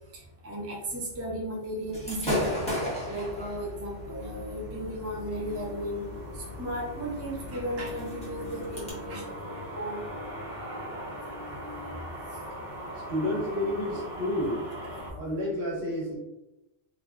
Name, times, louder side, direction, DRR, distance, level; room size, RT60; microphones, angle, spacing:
voice 1, 0.1-2.7 3.0-10.0, equal, 25° right, -3 dB, 0.3 m, -35 dB
Gunshot gunfire / Fireworks, 1.9-8.9, left 1 dB, 5° left, 0.8 m, -36 dB
sound 1, 3.9-15.1, equal, 40° right, 1.1 m, -40 dB
voice 2, 13.1-14.7 15.1-16.2, left 1 dB, 65° right, -5 dB, 1.5 m, -30 dB
3.4 x 2.2 x 2.5 m, 0.94 s
omnidirectional pair, 1.2 m